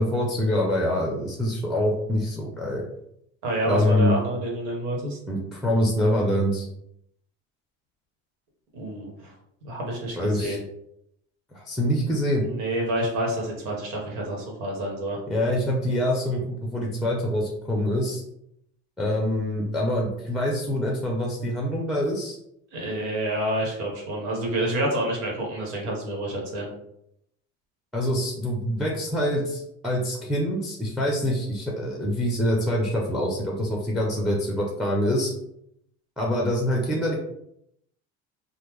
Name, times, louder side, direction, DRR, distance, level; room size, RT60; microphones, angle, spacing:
voice 1, 0.0-2.9 3.6-4.2 5.3-6.7 10.2-10.6 11.5-12.4 15.3-18.2 19.0-22.4 27.9-35.3 36.2-37.1, left 1 dB, ahead, -1 dB, 0.6 m, -25 dB
voice 2, 3.4-5.2 8.7-9.3 9.6-10.6 12.4-15.2 22.7-26.7, right 1 dB, 85° right, -1 dB, 1.2 m, -28 dB
3.3 x 2.2 x 3.1 m, 0.77 s
supercardioid pair, 85°, 33 cm